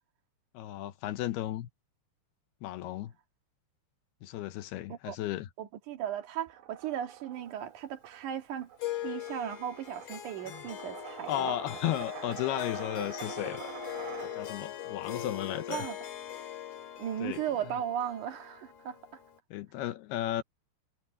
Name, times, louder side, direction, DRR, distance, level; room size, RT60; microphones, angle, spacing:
voice 1, 0.5-1.7 2.6-3.1 4.2-5.5 10.5-10.6 11.3-13.7 14.2-15.9 17.2-17.4 19.5-20.4, left 13 dB, 75° left, 2.7 m, -34 dB
voice 2, 5.6-8.7 9.0-11.6 15.7-16.0 17.0-19.0, right 10 dB, 55° right, 2.7 m, -36 dB
sound 1, 6.5-14.8, right 10 dB, 90° right, 4.2 m, -46 dB
Harp, 8.8-19.4, left 11 dB, 50° left, 3.3 m, -41 dB
omnidirectional pair, 5.0 m